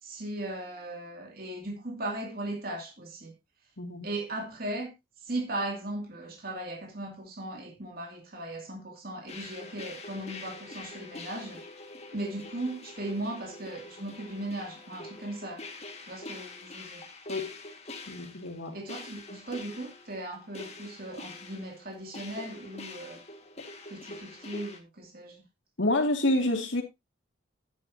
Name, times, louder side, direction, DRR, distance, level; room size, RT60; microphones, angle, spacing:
voice 1, 0.0-3.3 4.0-4.9 5.2-11.6 12.1-15.7 16.0-17.1 18.7-23.2 23.9-25.4, right 1 dB, 50° right, 2.6 m, -37 dB
sound 1, 9.3-24.8, left 2 dB, 30° left, 1.8 m, -45 dB
voice 2, 18.1-18.8 25.8-26.8, left 1 dB, 70° left, 2.4 m, -28 dB
11.0 x 9.9 x 2.8 m
head